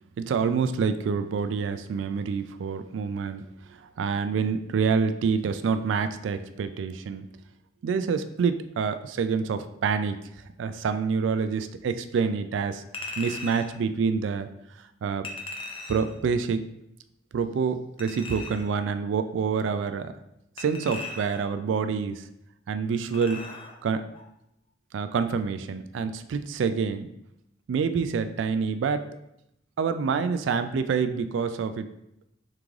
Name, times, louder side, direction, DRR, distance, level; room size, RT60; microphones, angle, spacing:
voice 1, 0.2-3.5 4.0-7.3 7.8-10.2 10.6-12.8 13.2-14.5 15.0-15.3 15.9-16.6 17.3-20.1 20.6-22.2 22.7-23.4 23.8-24.1 24.9-27.1 27.7-29.1 29.8-31.9, right 5 dB, 70° right, 10 dB, 0.3 m, -27 dB
Chink clink, 12.9-13.7 15.2-16.2 18.0-18.7 20.6-21.6 23.1-23.8 24.1-24.3, left 3 dB, 30° left, 0.5 m, -38 dB
3.7 x 3.2 x 3.5 m, 0.81 s
head